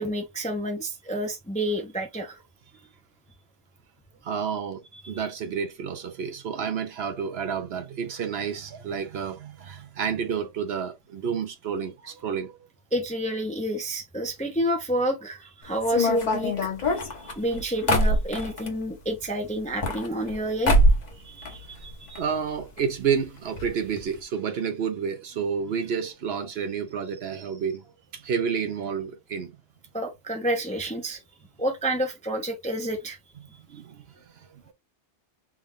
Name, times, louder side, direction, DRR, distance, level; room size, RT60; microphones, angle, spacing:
voice 1, 0.0-2.4 12.9-16.5 16.9-20.8 21.2-22.1 29.9-31.2 31.6-33.2, right 1 dB, 10° left, 0.5 m, -29 dB
voice 2, 4.2-12.6 17.2-17.4 21.2-21.6 22.1-29.5 33.7-34.7, right 7 dB, 65° right, 0.9 m, -30 dB
sound 1, 15.8-18.7 19.6-20.4 20.6-21.1 21.4-22.2 22.5-22.6 22.8-22.9 23.6-23.7 24.0-24.1, equal, 40° left, 0.9 m, -23 dB
3.6 x 2.3 x 3.5 m
omnidirectional pair, 1.2 m